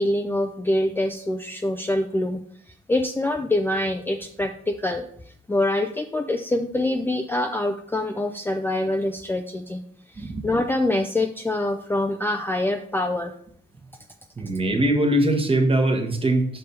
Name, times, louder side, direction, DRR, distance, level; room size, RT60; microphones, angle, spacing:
voice 1, 0.0-2.4 2.9-5.1 5.5-9.8 10.1-13.3, left 1 dB, 10° left, 5 dB, 0.4 m, -25 dB
voice 2, 10.2-10.5 14.4-16.5, right 1 dB, 25° right, 3 dB, 1.3 m, -21 dB
5.5 x 5.2 x 4.3 m, 0.65 s
cardioid pair, 90°, 20 cm